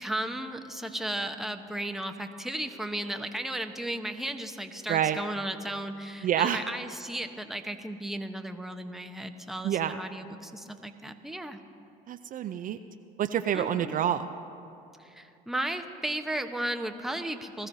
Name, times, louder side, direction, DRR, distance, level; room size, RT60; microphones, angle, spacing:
voice 1, 0.0-11.6 13.5-14.0 15.0-17.7, right 1 dB, ahead, 6 dB, 0.9 m, -35 dB
voice 2, 4.9-5.2 6.2-6.6 9.6-10.0 12.1-12.8 13.2-14.3, right 10 dB, 45° right, 9 dB, 0.5 m, -27 dB
20.5 x 14.0 x 2.7 m, 2.6 s
supercardioid pair, 80°, 19 cm